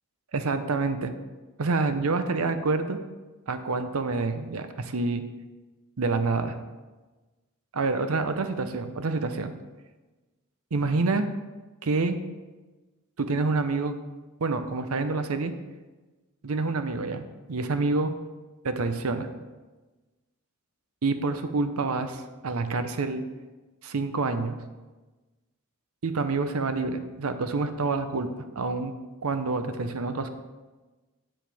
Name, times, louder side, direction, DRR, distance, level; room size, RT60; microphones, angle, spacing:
voice 1, 0.3-1.1 1.6-3.0 3.5-5.2 6.0-6.5 7.7-9.5 10.7-11.2 11.8-12.2 13.2-14.0 14.4-15.5 16.4-18.1 18.6-19.3 21.0-23.2 23.8-24.6 26.0-28.9 29.2-30.3, right 3 dB, 75° right, 9 dB, 0.7 m, -27 dB
8.8 x 7.6 x 3.4 m, 1.2 s
head